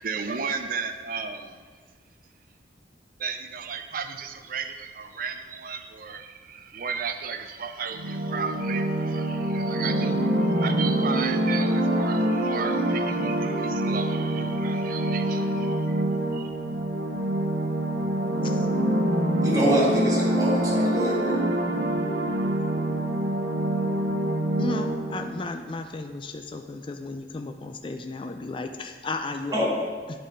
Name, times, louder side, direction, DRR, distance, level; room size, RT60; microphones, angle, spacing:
voice 1, 0.0-1.6 3.2-16.6, right 5 dB, 45° right, 7 dB, 0.5 m, -34 dB
sound 1, 7.9-25.3, right 1 dB, 70° right, 1.0 m, -25 dB
voice 2, 19.4-21.4 29.5-29.7, equal, 20° right, -5 dB, 1.8 m, -25 dB
voice 3, 24.6-29.7 30.1-30.2, left 3 dB, 25° left, 7 dB, 0.3 m, -34 dB
8.6 x 6.9 x 4.5 m, 1.5 s
head